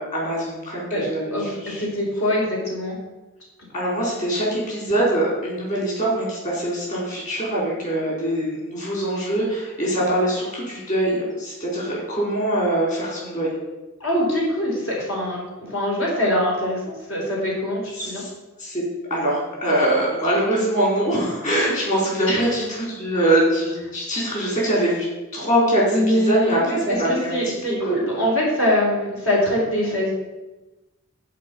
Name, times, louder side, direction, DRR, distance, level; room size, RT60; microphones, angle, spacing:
voice 1, 0.0-1.8 3.7-13.5 18.0-18.3 18.6-18.8 19.1-25.1 25.3-27.3 27.7-28.0, right 1 dB, 35° left, -4 dB, 4.4 m, -23 dB
voice 2, 1.3-3.0 14.0-18.2 22.3-22.5 25.9-30.1, equal, 65° left, -4 dB, 4.6 m, -23 dB
14.0 x 5.4 x 8.5 m, 1.1 s
head